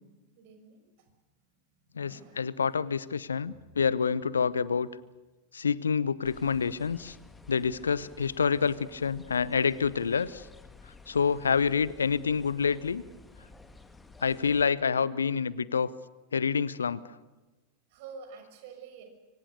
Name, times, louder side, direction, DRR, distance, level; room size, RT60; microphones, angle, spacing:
voice 1, 0.3-0.8 2.0-2.5 11.5-11.6 17.9-19.0, right 5 dB, 50° right, 5 dB, 6.2 m, -47 dB
voice 2, 1.9-4.9 5.5-7.1 7.5-10.5 11.1-13.0 14.2-15.9 16.3-17.0, left 6 dB, 70° left, 20 dB, 0.7 m, -27 dB
sound 1, 6.2-14.7, left 3 dB, 10° left, 1.8 m, -53 dB
25.5 x 25.0 x 6.7 m, 1.2 s
figure-of-eight pair, 90°, 0 cm